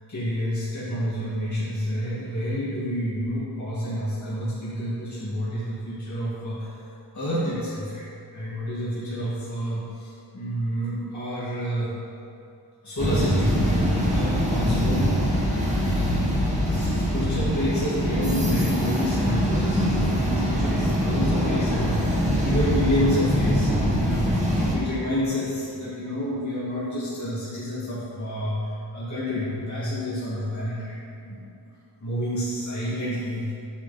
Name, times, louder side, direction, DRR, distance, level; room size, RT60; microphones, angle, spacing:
voice 1, 0.1-6.7 7.1-8.0 8.3-11.9 12.8-15.2 15.6-28.6 28.9-30.9 31.3-31.4 32.0-33.5, equal, 40° left, -10 dB, 2.0 m, -29 dB
sound 1, 13.0-24.7, equal, 15° right, 1.8 m, -23 dB
8.8 x 6.4 x 4.1 m, 2.6 s
wide cardioid pair, 90°, 43 cm